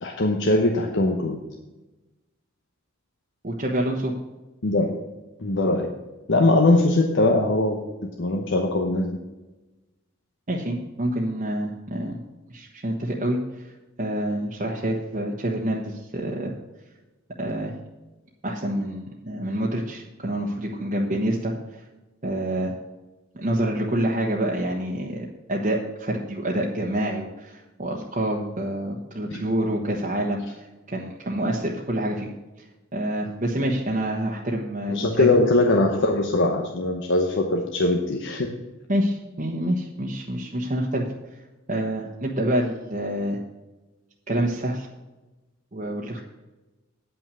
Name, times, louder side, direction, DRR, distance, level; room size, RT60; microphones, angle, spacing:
voice 1, 0.0-1.4 4.6-5.0 5.4-5.9 6.3-7.8 8.2-9.2 29.3-29.4 34.9-38.5, left 2 dB, 65° left, 2 dB, 1.0 m, -21 dB
voice 2, 3.4-4.1 10.5-12.2 12.5-13.7 14.0-16.5 17.4-17.7 18.4-21.8 22.2-22.7 23.3-32.3 32.9-35.3 38.9-41.1 41.7-43.4 44.3-44.9 45.7-46.2, right 1 dB, 40° right, -2 dB, 1.1 m, -27 dB
9.8 x 5.9 x 6.9 m, 1.1 s
head